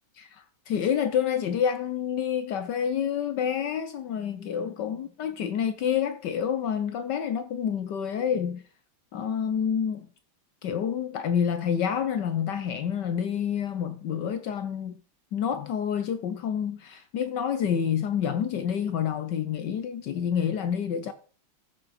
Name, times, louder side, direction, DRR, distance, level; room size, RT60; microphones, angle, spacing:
voice 1, 0.3-8.6 9.1-10.1 10.6-15.0 15.3-21.1, left 8 dB, 65° left, 1.2 m, -28 dB
14.0 x 6.6 x 4.2 m
omnidirectional pair, 2.2 m